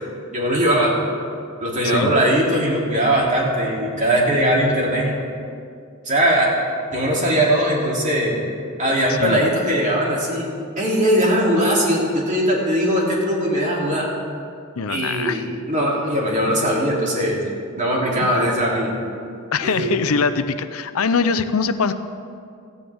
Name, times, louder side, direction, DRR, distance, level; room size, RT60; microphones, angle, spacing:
voice 1, 0.3-0.9 1.6-5.2 6.0-6.5 6.9-8.4 8.8-10.5 10.8-14.1 14.9-15.4 15.7-17.4 17.7-18.9 19.6-19.9, right 1 dB, 35° right, -3 dB, 2.9 m, -20 dB
voice 2, 14.8-15.4 19.5-21.9, left 5 dB, 80° left, 11 dB, 0.6 m, -22 dB
17.5 x 14.0 x 3.5 m, 2.4 s
head